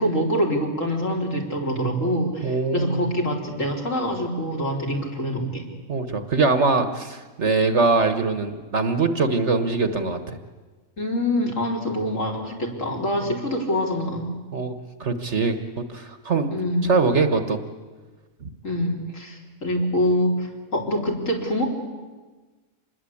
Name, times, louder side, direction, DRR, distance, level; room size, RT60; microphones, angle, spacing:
voice 1, 0.0-5.6 11.0-14.3 16.5-16.9 18.6-21.7, equal, 55° left, 0 dB, 4.2 m, -25 dB
voice 2, 2.4-3.1 5.9-10.4 14.5-14.7 15.0-15.6 15.9-16.5 16.8-17.6, right 4 dB, 50° right, 9 dB, 1.5 m, -22 dB
26.0 x 20.5 x 8.6 m, 1.3 s
omnidirectional pair, 1.6 m